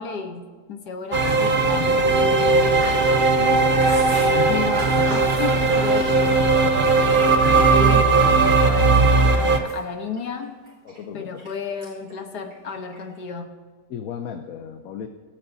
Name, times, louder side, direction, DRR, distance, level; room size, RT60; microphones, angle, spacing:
voice 1, 0.0-3.0 4.5-7.0 7.5-9.0 9.3-10.5 11.1-13.5, left 6 dB, 80° left, 5 dB, 1.6 m, -33 dB
sound 1, 1.1-9.6, right 3 dB, 40° right, 0.8 m, -18 dB
Chewing mastication, 1.2-6.6 7.0-8.1 8.5-9.1 9.5-11.5 11.8-12.1 12.4-13.2, right 1 dB, 85° right, 4.3 m, -40 dB
voice 2, 3.4-4.7 9.5-9.7 10.9-11.4 13.9-15.1, left 8 dB, 65° left, 6 dB, 1.0 m, -36 dB
23.0 x 8.9 x 2.7 m, 1.4 s
omnidirectional pair, 1.7 m